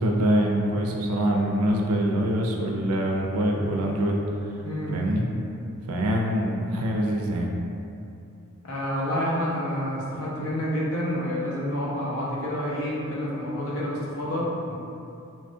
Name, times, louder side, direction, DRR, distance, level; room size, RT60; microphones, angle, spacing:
voice 1, 0.0-4.2 4.9-5.2 5.9-7.5, right 1 dB, 90° right, 0 dB, 0.4 m, -24 dB
voice 2, 4.6-5.0 8.6-14.7, equal, 70° left, -7 dB, 0.7 m, -28 dB
3.2 x 2.2 x 2.6 m, 2.6 s
head